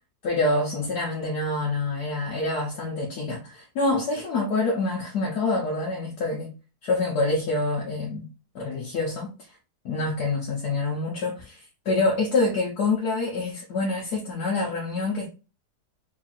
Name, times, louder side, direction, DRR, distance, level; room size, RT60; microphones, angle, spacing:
voice 1, 0.2-6.5 6.8-8.3 8.5-9.3 9.8-15.3, left 2 dB, 70° left, 1.4 m, -26 dB
3.5 x 2.4 x 4.1 m
omnidirectional pair, 1.8 m